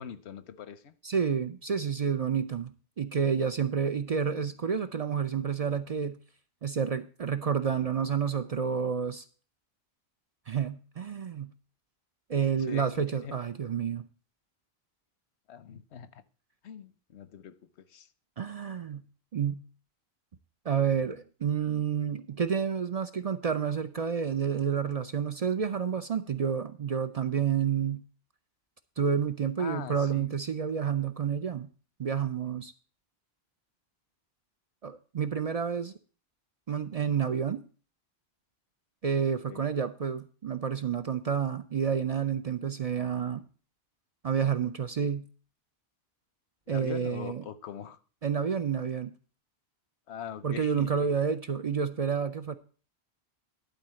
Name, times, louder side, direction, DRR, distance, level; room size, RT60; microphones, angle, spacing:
voice 1, 0.0-0.9 12.4-13.3 15.5-16.2 16.6-18.1 29.6-30.3 39.5-39.7 46.7-48.0 50.1-50.9, left 8 dB, 90° left, 1.0 m, -42 dB
voice 2, 1.0-6.2 6.6-9.2 10.5-11.5 12.3-14.0 18.4-19.0 19.3-19.6 20.7-28.0 29.0-31.7 32.0-32.7 34.8-35.9 36.7-37.6 39.0-43.4 44.2-45.3 46.7-47.4 48.2-49.1 50.4-52.6, right 7 dB, 45° right, 0.5 m, -29 dB
11.5 x 4.1 x 7.5 m
omnidirectional pair, 1.1 m